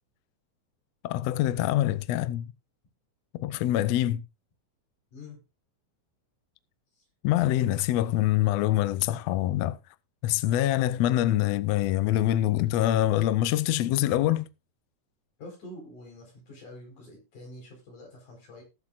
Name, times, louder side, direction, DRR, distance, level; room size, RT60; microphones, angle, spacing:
voice 1, 1.0-2.5 3.3-4.2 7.2-9.8 10.2-14.5, left 13 dB, 80° left, 1.5 m, -25 dB
voice 2, 15.4-18.6, left 1 dB, 65° left, 6.0 m, -46 dB
19.5 x 7.4 x 2.5 m
omnidirectional pair, 3.8 m